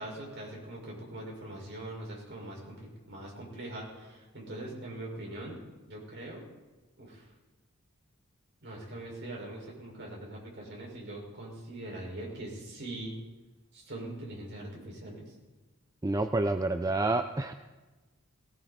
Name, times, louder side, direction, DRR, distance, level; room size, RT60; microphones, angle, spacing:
voice 1, 0.0-5.6 5.9-6.4 7.0-7.3 8.6-13.1 13.7-15.3, right 1 dB, 50° right, -2 dB, 5.4 m, -42 dB
voice 2, 16.0-17.5, right 2 dB, 15° right, 8 dB, 0.4 m, -28 dB
19.0 x 17.0 x 4.2 m, 1.2 s
head